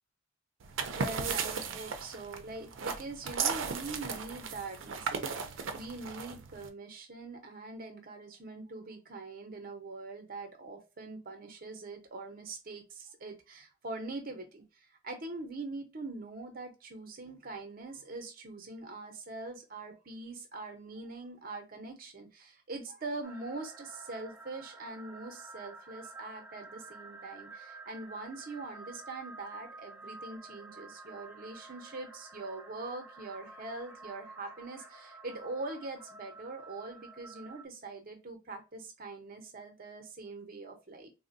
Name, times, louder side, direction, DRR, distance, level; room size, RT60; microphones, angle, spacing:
sound 1, 0.6-6.7, right 5 dB, 80° right, 0.5 m, -36 dB
voice 1, 0.9-41.1, right 3 dB, 50° right, 6 dB, 0.7 m, -43 dB
sound 2, 23.2-37.7, right 3 dB, 10° right, 0.4 m, -50 dB
3.6 x 2.1 x 2.6 m, 0.29 s
head